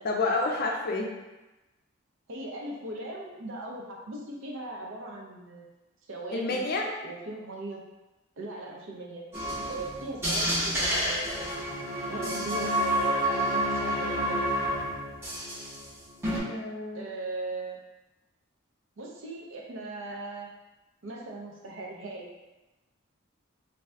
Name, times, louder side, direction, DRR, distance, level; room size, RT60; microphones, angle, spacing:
voice 1, 0.0-1.1 6.3-6.9 16.5-17.0, left 3 dB, 45° left, 1 dB, 0.4 m, -29 dB
voice 2, 2.3-5.7 6.1-6.6 7.0-7.8 8.4-9.3 9.7-11.6 12.1-14.4 16.9-17.8 19.0-20.5 21.0-22.3, right 2 dB, 70° right, -2 dB, 0.6 m, -39 dB
sound 1, 9.3-15.9 16.2-16.4, equal, 10° right, 0.7 m, -29 dB
2.6 x 2.3 x 3.2 m, 1.1 s
head